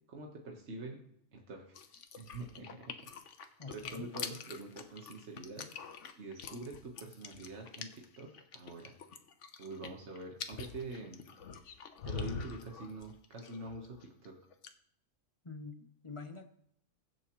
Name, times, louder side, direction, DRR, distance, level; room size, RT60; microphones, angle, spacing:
voice 1, 0.1-1.0 1.3-1.8 2.2-2.9 3.7-5.7 6.2-9.0 9.6-11.2 12.0-14.3, right 2 dB, 65° right, 0 dB, 1.7 m, -45 dB
sound 1, 1.8-14.3 14.5-14.7, left 5 dB, 80° left, 1.2 m, -45 dB
voice 2, 3.6-4.1 15.4-16.5, left 4 dB, 25° left, 6 dB, 1.1 m, -46 dB
22.0 x 7.8 x 3.1 m, 0.71 s
omnidirectional pair, 1.2 m